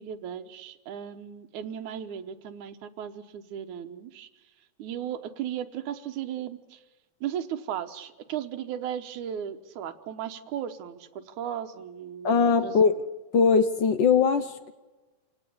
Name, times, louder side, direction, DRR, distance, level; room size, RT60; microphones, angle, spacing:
voice 1, 0.0-4.3 4.8-6.8 7.2-12.9, right 9 dB, 85° right, 6 dB, 2.6 m, -36 dB
voice 2, 12.2-13.0 13.3-14.7, left 5 dB, 70° left, 10 dB, 1.1 m, -21 dB
27.5 x 17.5 x 8.7 m, 1.2 s
omnidirectional pair, 3.3 m